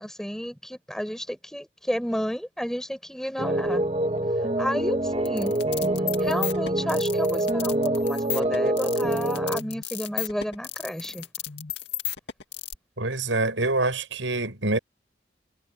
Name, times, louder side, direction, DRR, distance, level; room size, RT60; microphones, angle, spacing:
voice 1, 0.0-3.8 4.6-5.5 6.2-11.3, equal, 5° left, 7.6 m, -31 dB
sound 1, 3.4-9.6, right 1 dB, 35° right, 2.6 m, -25 dB
sound 2, 5.2-12.7, left 10 dB, 65° left, 2.3 m, -34 dB
voice 2, 13.0-14.8, right 2 dB, 85° right, 6.3 m, -25 dB
head